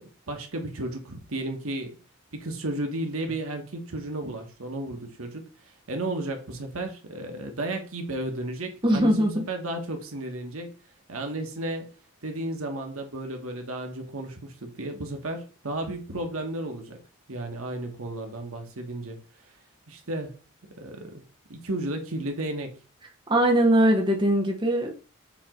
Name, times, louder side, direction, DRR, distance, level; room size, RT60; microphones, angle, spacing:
voice 1, 0.0-2.0 2.3-10.8 11.1-11.9 12.2-17.0 17.3-19.2 19.9-21.2 21.5-22.8, right 1 dB, 80° right, 1.3 m, -33 dB
voice 2, 8.8-9.4 23.3-25.0, right 1 dB, 25° right, 1.1 m, -21 dB
7.1 x 3.0 x 5.0 m
head